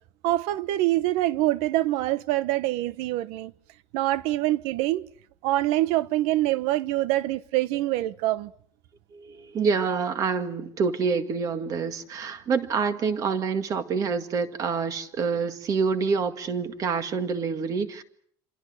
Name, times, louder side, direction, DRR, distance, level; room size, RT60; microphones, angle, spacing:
voice 1, 0.2-3.5 3.9-5.1 5.4-8.5, right 16 dB, 80° right, 1.1 m, -25 dB
voice 2, 9.1-18.0, right 5 dB, 35° right, 2.0 m, -27 dB
27.5 x 26.5 x 6.5 m
cardioid pair, 170°, 10 cm